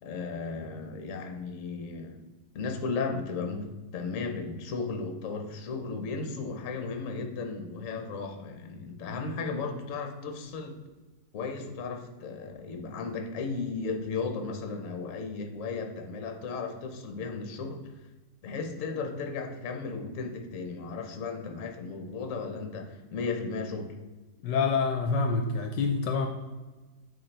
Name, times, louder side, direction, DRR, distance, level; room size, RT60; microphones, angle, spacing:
voice 1, 0.0-2.2 2.5-10.7 11.3-17.9 18.4-23.9, left 4 dB, 55° left, 4 dB, 1.0 m, -35 dB
voice 2, 24.4-26.3, left 4 dB, 75° left, 4 dB, 1.2 m, -26 dB
8.6 x 4.0 x 3.3 m, 1.2 s
omnidirectional pair, 2.0 m